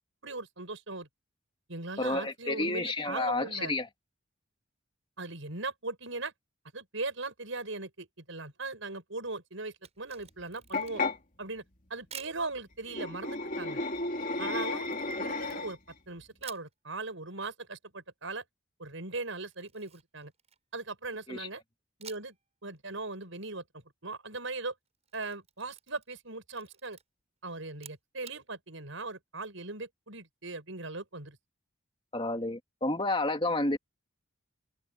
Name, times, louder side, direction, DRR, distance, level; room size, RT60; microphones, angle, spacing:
voice 1, 0.2-1.1 1.7-3.7 5.2-6.3 6.7-11.0 11.4-11.6 11.9-13.8 14.4-14.9 15.2-15.8 16.1-18.4 18.8-20.3 20.7-21.6 22.0-22.3 22.6-23.6 24.0-24.7 25.1-27.0 27.4-31.4, right 3 dB, 70° right, 6.1 m, -39 dB
voice 2, 2.0-3.9 21.3-21.5 32.1-33.8, left 2 dB, 25° left, 2.5 m, -30 dB
Camera, 9.7-11.2 12.1-12.4 14.8-16.0 16.4-16.7 19.4-20.9 22.0-22.4 22.8-22.9 24.9-26.3 26.5-27.0 27.7-28.4, right 8 dB, 35° right, 7.6 m, -51 dB
sound 1, 10.7-11.2 12.8-15.9, left 3 dB, 40° left, 3.3 m, -33 dB
head